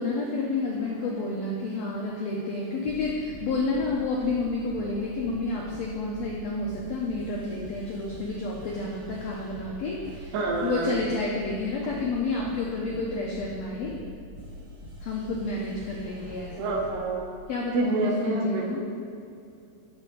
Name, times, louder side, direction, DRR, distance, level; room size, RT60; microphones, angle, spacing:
voice 1, 0.0-10.3 10.6-14.0 15.0-16.8 17.5-18.8, left 3 dB, 85° left, -2 dB, 1.5 m, -30 dB
sound 1, 0.7-1.7 2.4-17.0 17.7-18.1, left 1 dB, 45° right, 1.2 m, -44 dB
voice 2, 10.3-11.0 16.6-17.3 17.7-18.8, right 2 dB, 80° right, 1 dB, 2.6 m, -27 dB
10.5 x 6.0 x 3.8 m, 2.6 s
omnidirectional pair, 4.1 m